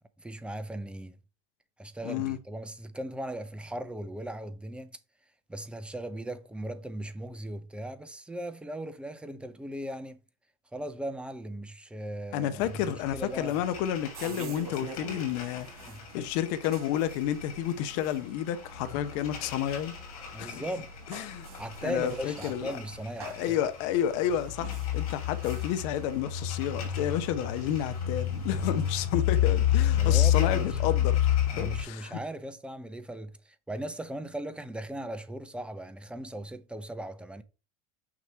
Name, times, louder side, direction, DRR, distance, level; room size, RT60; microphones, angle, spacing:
voice 1, 0.2-1.2 1.8-5.0 5.5-10.2 10.7-12.8 13.1-13.5 15.8-16.0 20.3-20.9 21.6-23.6 30.0-30.8 31.5-37.4, right 1 dB, 5° right, 0.7 m, -38 dB
voice 2, 2.0-2.4 12.3-19.9 20.4-20.6 21.1-21.5 21.8-22.8 23.2-31.3 31.6-32.2, left 10 dB, 60° left, 0.8 m, -31 dB
sound 1, 12.6-31.8, left 10 dB, 85° left, 2.3 m, -31 dB
sound 2, 13.2-28.9, right 7 dB, 80° right, 1.7 m, -49 dB
6.0 x 3.0 x 5.6 m
supercardioid pair, 115°, 18 cm